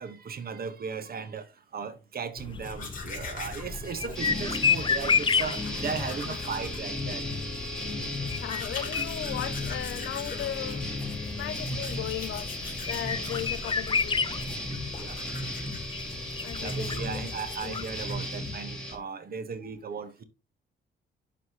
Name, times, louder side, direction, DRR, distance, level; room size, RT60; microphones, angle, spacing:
voice 1, 0.0-7.2 7.8-7.9 9.0-9.1 15.0-15.2 16.6-20.2, right 5 dB, 50° right, 1.4 m, -37 dB
sound 1, 2.4-18.2, left 6 dB, 25° left, 0.6 m, -33 dB
Domestic sounds home sounds, 2.5-18.6, left 3 dB, 45° left, 4.0 m, -44 dB
sound 2, 4.1-18.9, left 1 dB, 5° left, 2.8 m, -35 dB
voice 2, 6.0-6.4 8.4-10.9 11.4-14.3 16.4-17.3 17.6-17.9, left 13 dB, 70° left, 0.6 m, -37 dB
11.5 x 3.9 x 3.0 m
cardioid pair, 90°, 20 cm